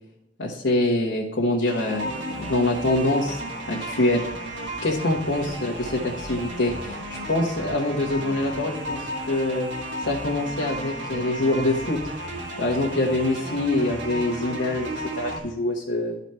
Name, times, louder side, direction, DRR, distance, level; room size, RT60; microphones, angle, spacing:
voice 1, 0.4-3.4 3.7-4.3 4.8-9.7 10.1-12.0 12.6-16.2, left 1 dB, 85° left, -4 dB, 1.3 m, -25 dB
sound 1, 1.7-15.4, right 1 dB, 85° right, 1.5 m, -33 dB
12.0 x 4.1 x 4.4 m, 0.81 s
head